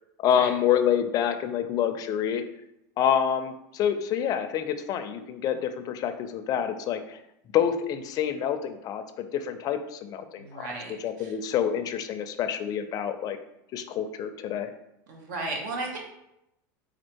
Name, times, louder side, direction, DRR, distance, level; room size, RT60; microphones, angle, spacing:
voice 1, 0.2-2.4 3.0-7.2 7.5-10.7 11.0-13.4 13.7-14.7, left 9 dB, 40° left, 9 dB, 0.4 m, -27 dB
voice 2, 10.4-11.3 15.1-16.0, right 2 dB, 80° right, 1 dB, 1.1 m, -35 dB
4.3 x 2.4 x 4.5 m, 0.85 s
supercardioid pair, 130°, 10 cm